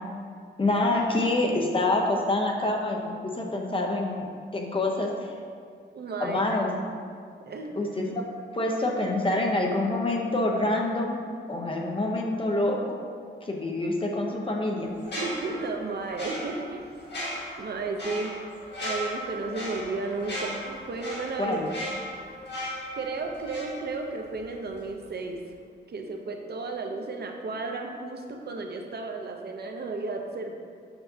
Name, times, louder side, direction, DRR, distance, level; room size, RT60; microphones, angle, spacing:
voice 1, 0.6-4.3 4.5-5.3 6.2-6.7 7.8-8.3 8.5-11.2 11.5-13.0 13.4-14.9 21.4-21.7, left 2 dB, 25° left, 0 dB, 0.7 m, -26 dB
voice 2, 5.9-6.4 7.4-7.8 15.2-16.9 17.6-18.3 18.8-21.6 22.9-25.4 25.9-30.5, right 3 dB, 55° right, 3 dB, 0.6 m, -33 dB
sound 1, 15.0-24.4 24.7-24.9, equal, 60° left, 1.6 m, -37 dB
6.8 x 5.6 x 2.7 m, 2.1 s
wide cardioid pair, 135°, 20 cm